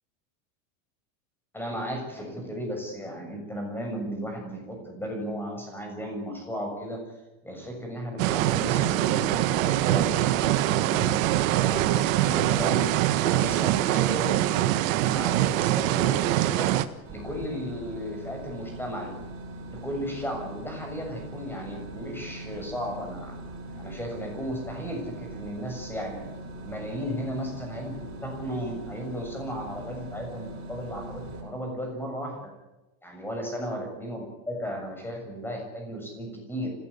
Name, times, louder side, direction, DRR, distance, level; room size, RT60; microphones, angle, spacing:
voice 1, 1.5-7.0 7.4-14.6 15.0-16.7 17.1-19.1 19.7-23.3 23.8-26.3 26.6-28.0 28.2-32.5 33.0-36.7, equal, 5° left, 2 dB, 6.9 m, -35 dB
sound 1, 8.2-16.8, right 14 dB, 70° right, 1.6 m, -24 dB
sound 2, 17.0-31.4, right 1 dB, 30° right, 7.4 m, -41 dB
26.5 x 17.0 x 8.5 m, 1.0 s
supercardioid pair, 155°, 41 cm